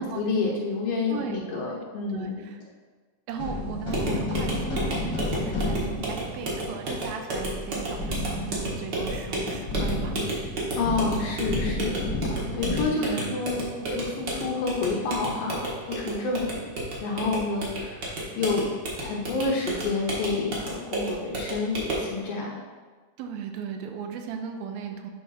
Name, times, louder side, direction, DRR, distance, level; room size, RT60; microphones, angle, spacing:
voice 1, 0.0-2.4 10.8-12.0 12.3-13.6 13.9-16.7 17.0-18.1 18.4-18.7 19.0-22.5, left 3 dB, 75° left, -2 dB, 2.4 m, -29 dB
voice 2, 1.1-1.8 2.1-2.6 3.3-10.2 13.0-14.0 23.2-25.1, right 6 dB, 80° right, 4 dB, 2.4 m, -37 dB
sound 1, 3.4-12.9, left 2 dB, 55° left, 1.5 m, -31 dB
sound 2, 3.9-22.1, right 1 dB, 55° right, 1.2 m, -32 dB
8.5 x 3.3 x 5.5 m, 1.4 s
omnidirectional pair, 4.3 m